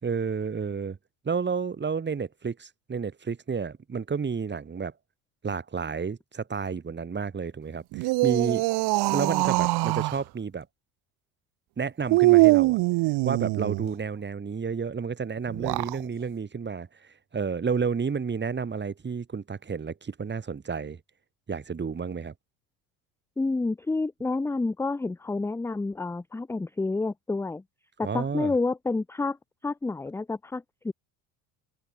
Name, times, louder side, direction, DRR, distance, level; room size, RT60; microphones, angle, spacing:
voice 1, 0.0-1.0 1.2-4.9 5.4-8.7 9.1-10.7 11.8-12.8 13.2-16.9 17.3-21.0 21.5-22.3 28.0-28.5, right 5 dB, 25° right, 4.1 m, -31 dB
sound 1, 7.9-10.2 12.1-13.9 15.5-16.0, right 22 dB, 65° right, 1.6 m, -23 dB
voice 2, 23.4-27.6 28.0-29.4 29.6-30.9, left 3 dB, 5° left, 0.5 m, -29 dB
supercardioid pair, 95°, 42 cm